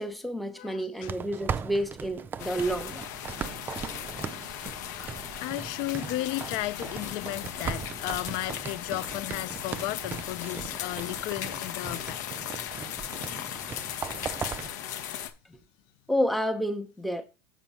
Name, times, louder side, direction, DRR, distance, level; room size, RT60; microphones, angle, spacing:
voice 1, 0.0-3.1 15.5-15.6 16.1-17.2, equal, ahead, 0.8 m, -30 dB
voice 2, 0.6-1.1 3.9-4.2 5.0-12.3, left 17 dB, 55° left, 0.5 m, -35 dB
sound 1, 1.0-14.7, right 6 dB, 20° right, 0.4 m, -39 dB
sound 2, 2.4-15.3, left 10 dB, 75° left, 1.1 m, -37 dB
7.2 x 4.4 x 5.4 m
supercardioid pair, 125°, 10 cm